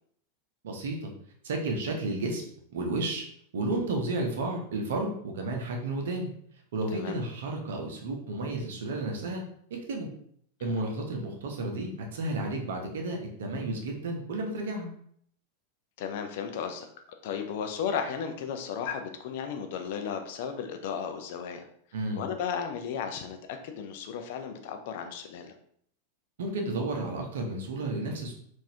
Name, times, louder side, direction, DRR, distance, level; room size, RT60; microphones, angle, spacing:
voice 1, 0.6-1.1 1.4-2.4 2.7-3.2 3.5-6.3 6.7-9.4 9.7-10.1 10.6-14.9 21.9-22.2 26.4-28.3, right 2 dB, 60° right, 2 dB, 0.7 m, -32 dB
voice 2, 16.0-16.9 17.2-21.7 22.2-25.5, left 7 dB, 50° left, 6 dB, 0.4 m, -34 dB
3.9 x 2.6 x 2.7 m, 0.65 s
figure-of-eight pair, 90°, 0 cm